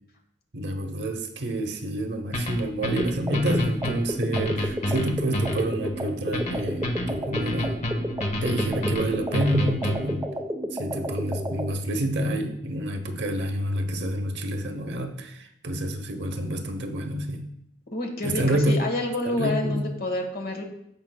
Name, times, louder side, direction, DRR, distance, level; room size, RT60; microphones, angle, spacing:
voice 1, 0.5-7.8 8.4-10.3 10.7-17.4 18.2-18.8 19.2-19.9, right 1 dB, 65° right, 5 dB, 0.8 m, -28 dB
sound 1, 2.3-10.2, left 1 dB, 40° left, 0.8 m, -29 dB
sound 2, 3.0-11.7, equal, 15° right, 0.6 m, -32 dB
voice 2, 17.9-20.6, left 2 dB, 55° left, 4 dB, 1.3 m, -28 dB
14.5 x 5.1 x 2.2 m, 0.77 s
head